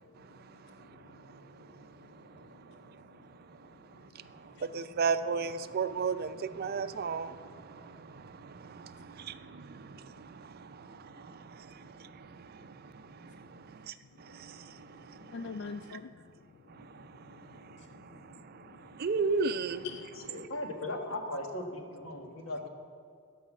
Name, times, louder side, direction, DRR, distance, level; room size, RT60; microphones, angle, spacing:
voice 1, 4.7-7.4 9.3-9.4 19.0-19.8, right 5 dB, 50° right, 0.4 m, -30 dB
voice 2, 15.2-16.2 16.8-18.2 18.7-18.8 19.8-20.3 22.2-22.3, left 4 dB, 60° left, 0.3 m, -44 dB
voice 3, 20.3-22.7, left 1 dB, 90° left, 1.5 m, -38 dB
15.5 x 5.5 x 7.3 m
head